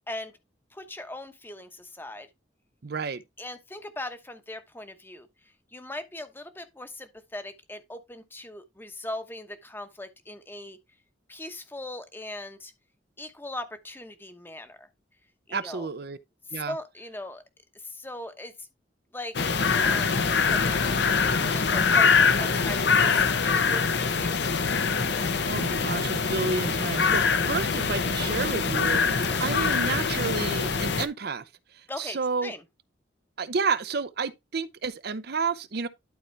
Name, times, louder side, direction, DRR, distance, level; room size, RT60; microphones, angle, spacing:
voice 1, 0.7-2.3 3.4-5.3 5.7-10.8 11.3-12.7 13.2-14.9 15.5-15.9 16.5-17.4 17.8-18.7 19.1-19.3 19.7-24.5 29.1-29.5 31.9-32.6, left 1 dB, 10° left, 1.0 m, -40 dB
voice 2, 2.8-3.2 15.5-16.2 16.5-16.8 25.4-31.4 31.7-32.5 33.4-35.9, right 4 dB, 55° right, 0.6 m, -30 dB
sound 1, 19.3-31.1, left 5 dB, 60° left, 0.8 m, -24 dB
11.5 x 4.3 x 3.3 m
head